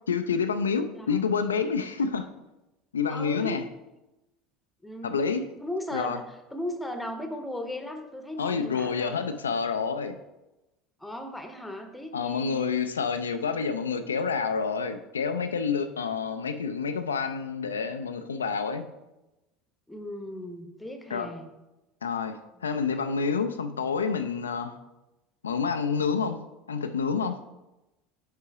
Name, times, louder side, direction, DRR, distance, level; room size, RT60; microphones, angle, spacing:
voice 1, 0.1-2.3 2.9-3.6 5.0-5.5 5.9-6.2 8.4-10.2 12.1-18.9 21.1-21.3 22.0-24.8 25.4-26.4 26.7-27.4, left 5 dB, 85° left, 8 dB, 0.3 m, -28 dB
voice 2, 3.1-3.6 4.8-5.2 5.6-9.2 11.0-12.8 19.9-21.5 22.5-22.6, left 1 dB, 5° left, 5 dB, 0.9 m, -37 dB
5.5 x 3.8 x 4.8 m, 0.99 s
hypercardioid pair, 75°, 0 cm